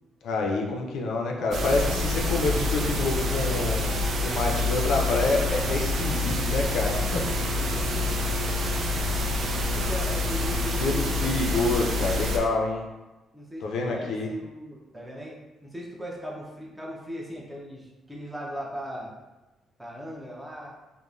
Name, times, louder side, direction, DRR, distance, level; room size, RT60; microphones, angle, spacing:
voice 1, 0.2-7.2 10.8-12.9 13.6-14.3, left 2 dB, 75° left, 0 dB, 0.4 m, -27 dB
sound 1, 1.5-12.4, left 2 dB, 60° right, 0.4 m, -27 dB
voice 2, 7.1-8.3 9.2-11.4 13.3-15.4 15.6-19.2 19.8-20.7, equal, 10° right, -3 dB, 0.6 m, -38 dB
2.9 x 2.0 x 2.4 m, 1.1 s
cardioid pair, 90°, 0 cm